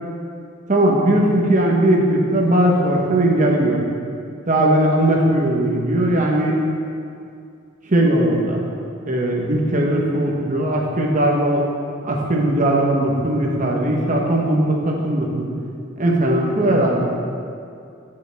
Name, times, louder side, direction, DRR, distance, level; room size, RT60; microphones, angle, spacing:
voice 1, 0.7-3.8 4.5-6.6 7.9-8.6 9.1-11.6 12.0-15.5 16.0-17.0, right 1 dB, 40° right, -1 dB, 1.1 m, -18 dB
12.5 x 5.3 x 3.5 m, 2.4 s
head